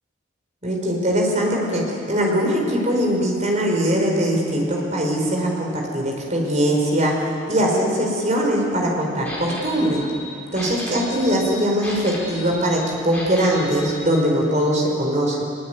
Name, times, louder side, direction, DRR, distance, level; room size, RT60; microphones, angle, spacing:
voice 1, 0.6-7.1 7.5-10.0 10.5-15.4, equal, 35° right, 0 dB, 5.0 m, -21 dB
sound 1, 9.2-14.1, left 1 dB, 5° left, 5.2 m, -35 dB
21.5 x 21.5 x 9.3 m, 2.6 s
head